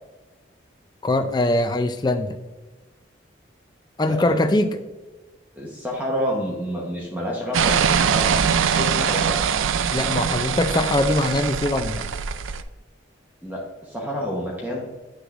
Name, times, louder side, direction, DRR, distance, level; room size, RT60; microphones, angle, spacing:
voice 1, 1.0-2.4 4.0-4.8 9.9-12.0, left 1 dB, 20° left, 8 dB, 0.4 m, -22 dB
voice 2, 4.0-4.5 5.6-8.3 8.7-9.6 13.4-14.8, equal, 10° right, -3 dB, 1.0 m, -29 dB
sound 1, 7.5-12.6, right 7 dB, 90° right, 0.4 m, -22 dB
7.9 x 6.3 x 2.5 m, 1.2 s
head